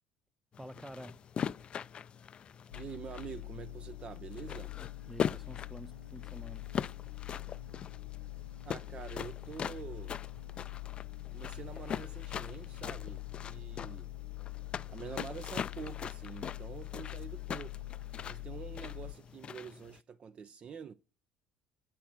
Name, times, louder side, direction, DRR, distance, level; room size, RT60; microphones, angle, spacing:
sound 1, 0.5-20.0, left 8 dB, 35° left, 0.4 m, -42 dB
voice 1, 0.6-1.2 5.1-6.8, right 1 dB, 5° right, 0.7 m, -48 dB
sound 2, 2.7-19.1, left 19 dB, 75° left, 1.0 m, -44 dB
voice 2, 2.7-4.7 8.6-10.2 11.3-14.1 14.9-17.7 18.3-20.9, right 7 dB, 35° right, 0.4 m, -46 dB
9.1 x 5.7 x 6.6 m
figure-of-eight pair, 60°, 3 cm